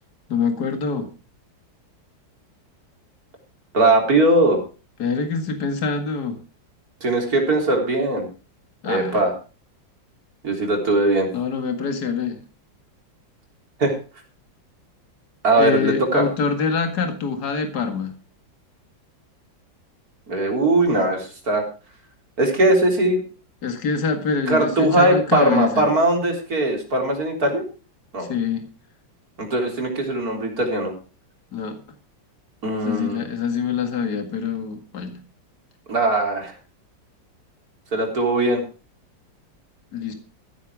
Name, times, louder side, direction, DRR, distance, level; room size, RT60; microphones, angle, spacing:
voice 1, 0.3-1.1 5.0-6.4 8.8-9.2 11.3-12.4 15.6-18.1 23.6-25.8 28.3-28.7 31.5-31.8 32.8-35.2 39.9-40.1, left 5 dB, 55° left, 6 dB, 2.5 m, -25 dB
voice 2, 3.7-4.6 7.0-8.3 8.8-9.3 10.4-11.3 13.8-14.0 15.4-16.3 20.3-21.6 22.4-23.2 24.5-27.6 28.1-28.3 29.4-31.0 32.6-33.3 35.9-36.5 37.9-38.6, right 2 dB, 50° right, 1 dB, 4.1 m, -20 dB
15.0 x 9.9 x 4.9 m, 0.35 s
omnidirectional pair, 2.1 m